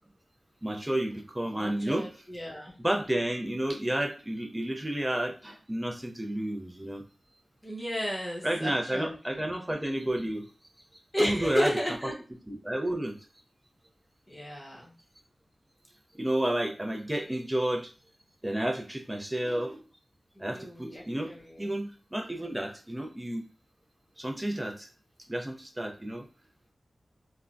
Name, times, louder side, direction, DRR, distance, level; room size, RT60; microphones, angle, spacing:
voice 1, 0.6-2.2 2.8-7.0 8.4-10.5 11.2-12.1 12.5-13.2 16.1-17.9 18.4-19.8 20.4-23.4 24.2-24.9 25.3-26.3, right 1 dB, 15° right, 5 dB, 0.5 m, -31 dB
voice 2, 1.6-2.7 7.6-9.4 11.1-12.1 14.3-14.9 20.3-21.7, equal, 20° left, -4 dB, 1.0 m, -33 dB
3.4 x 2.2 x 2.5 m, 0.37 s
wide cardioid pair, 85°, 0 cm